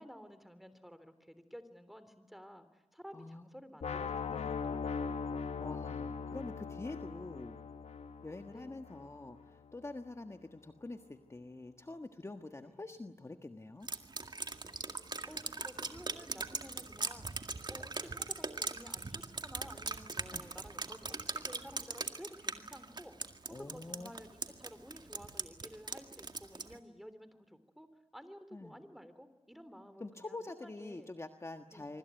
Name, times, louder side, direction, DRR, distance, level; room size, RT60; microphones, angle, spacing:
voice 1, 0.0-4.8 8.5-8.7 12.6-12.8 15.2-23.1 23.5-27.9 28.1-31.1 31.7-31.9, equal, ahead, 12 dB, 3.3 m, -53 dB
voice 2, 3.1-3.4 5.6-7.6 8.2-13.9 20.3-20.4 23.5-24.1 28.5-28.8 30.0-32.0, left 2 dB, 25° left, 6 dB, 1.4 m, -46 dB
sound 1, 3.8-9.7, left 5 dB, 75° left, 1.2 m, -40 dB
Drip, 13.9-26.8, right 3 dB, 40° right, 2.0 m, -40 dB
25.0 x 24.5 x 9.3 m, 1.1 s
cardioid pair, 70°, 11 cm